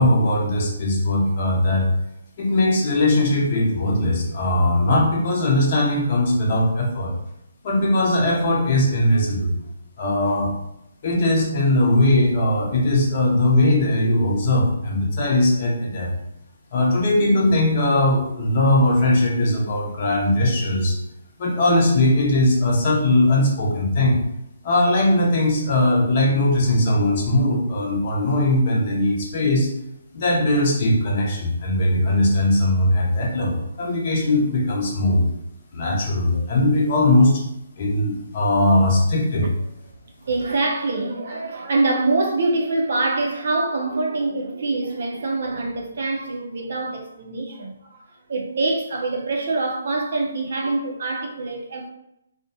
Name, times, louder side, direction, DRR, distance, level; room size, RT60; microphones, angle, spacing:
voice 1, 0.0-1.9 2.4-7.1 7.6-9.5 10.0-10.5 11.0-16.1 16.7-21.0 21.4-24.2 24.6-29.7 30.1-35.3 35.7-37.4 37.8-39.5, left 1 dB, 45° left, 0.7 m, -19 dB
voice 2, 40.2-51.9, right 2 dB, 60° right, 0.5 m, -25 dB
2.4 x 2.1 x 2.6 m
hypercardioid pair, 155°, 0 cm